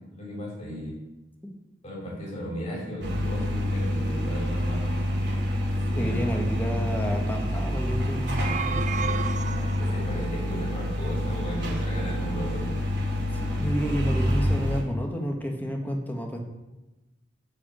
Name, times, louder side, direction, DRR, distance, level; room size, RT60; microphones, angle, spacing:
voice 1, 0.1-1.0 1.8-4.9 5.6-6.4 9.8-12.7, equal, 35° left, -5 dB, 4.6 m, -35 dB
sound 1, 3.0-14.8, equal, 75° right, 2.8 m, -27 dB
voice 2, 5.9-8.3 9.2-9.3 13.6-16.4, equal, 10° left, 1 dB, 1.6 m, -30 dB
sound 2, 8.2-10.1, right 5 dB, 40° right, 0.5 m, -32 dB
12.5 x 4.9 x 7.6 m, 1.1 s
head